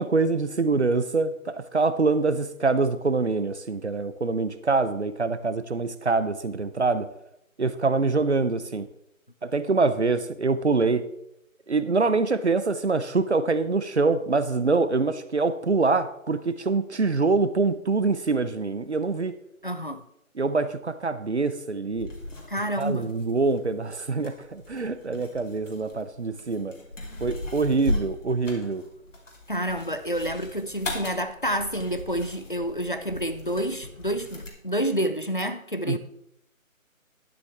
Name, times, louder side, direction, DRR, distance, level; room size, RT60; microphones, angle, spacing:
voice 1, 0.0-7.1 7.6-8.9 9.4-11.1 11.7-19.3 20.4-22.1 22.8-26.8 27.2-28.8 35.9-36.0, right 3 dB, 55° right, 0.7 m, -25 dB
voice 2, 19.6-20.0 22.5-23.1 29.5-36.0, equal, 40° left, 0.5 m, -29 dB
sound 1, 21.9-34.5, left 1 dB, 60° left, 2.7 m, -38 dB
11.5 x 9.8 x 3.4 m
figure-of-eight pair, 180°, 41 cm